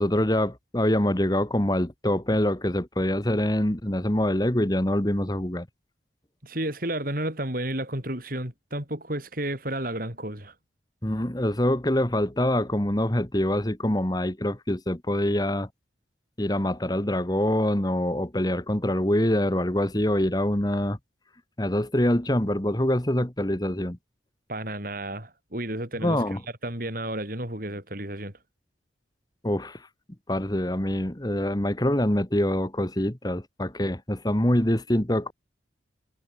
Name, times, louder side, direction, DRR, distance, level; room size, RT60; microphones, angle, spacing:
voice 1, 0.0-5.7 11.0-15.7 16.4-21.0 21.6-24.0 26.0-26.4 29.4-29.8 30.3-35.3, left 1 dB, 20° left, 1.6 m, -25 dB
voice 2, 6.4-10.5 24.5-26.2 26.6-28.3, right 1 dB, 50° right, 6.1 m, -32 dB
head